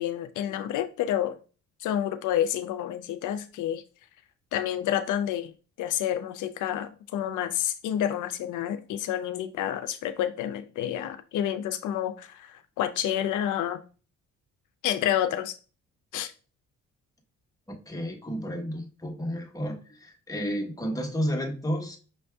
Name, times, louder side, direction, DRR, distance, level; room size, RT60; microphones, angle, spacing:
voice 1, 0.0-1.4 1.8-3.8 4.5-5.5 5.8-13.8 14.8-15.6 16.1-16.3, left 11 dB, 80° left, 0.5 m, -29 dB
voice 2, 17.7-22.0, equal, 10° left, 1.2 m, -32 dB
5.7 x 2.6 x 3.4 m
cardioid pair, 90°, 30 cm